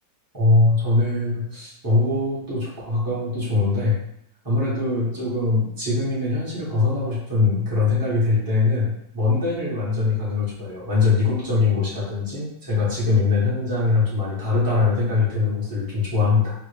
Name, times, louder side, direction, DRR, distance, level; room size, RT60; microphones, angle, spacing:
voice 1, 0.3-4.0 4.4-16.5, left 3 dB, 15° right, -8 dB, 0.7 m, -22 dB
3.1 x 2.4 x 3.2 m, 0.75 s
omnidirectional pair, 2.2 m